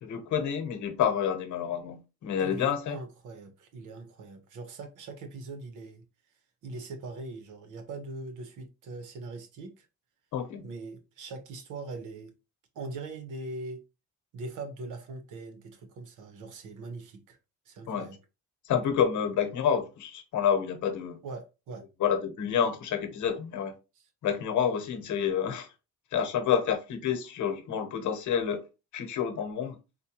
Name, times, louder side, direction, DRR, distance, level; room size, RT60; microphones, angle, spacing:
voice 1, 0.0-3.0 10.3-10.7 17.9-18.1 18.7-21.2 22.0-23.8 24.2-25.7 26.1-28.6 28.9-29.8, left 8 dB, 75° left, 1.0 m, -28 dB
voice 2, 2.4-6.0 6.6-9.9 10.6-12.3 12.7-13.8 14.3-17.4 17.7-18.2 21.2-21.9 23.9-24.1, right 3 dB, 85° right, 1.0 m, -41 dB
4.2 x 2.2 x 2.9 m
cardioid pair, 90°, 30 cm